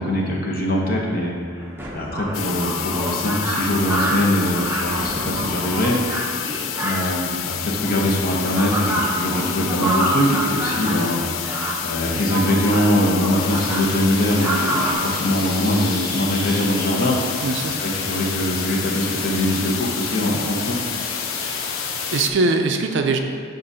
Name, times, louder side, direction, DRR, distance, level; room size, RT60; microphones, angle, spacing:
voice 1, 0.0-1.6 1.9-6.0 6.8-11.2 11.8-17.2 17.6-20.8, left 1 dB, 45° left, -2 dB, 0.9 m, -22 dB
sound 1, 1.6-14.9, right 1 dB, 10° right, 0.6 m, -28 dB
sound 2, 2.3-22.3, left 11 dB, 70° left, 0.3 m, -29 dB
sound 3, 13.3-22.2, equal, 20° left, 1.0 m, -33 dB
voice 2, 17.4-17.8 21.3-21.6 22.1-23.2, right 3 dB, 60° right, 4 dB, 0.4 m, -21 dB
7.6 x 2.6 x 5.4 m, 2.2 s
head